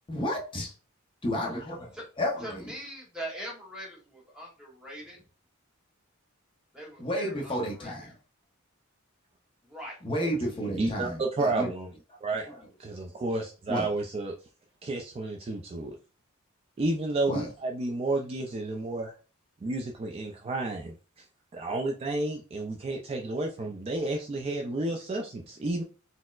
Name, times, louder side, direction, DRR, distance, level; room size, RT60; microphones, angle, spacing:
voice 1, 0.1-0.7 1.2-1.8 2.2-2.7 7.0-8.1 10.0-11.7 12.5-12.6 13.7-13.9 17.3-17.5, equal, 25° left, -1 dB, 0.6 m, -31 dB
voice 2, 2.4-5.2 6.7-8.0 9.6-10.0, right 1 dB, 5° right, -2 dB, 1.0 m, -42 dB
voice 3, 10.8-11.9 12.2-12.5 12.8-14.3 14.8-16.0 16.8-19.1 19.6-21.3 21.5-25.8, right 2 dB, 30° right, 1 dB, 0.3 m, -31 dB
4.1 x 2.0 x 2.3 m, 0.36 s
head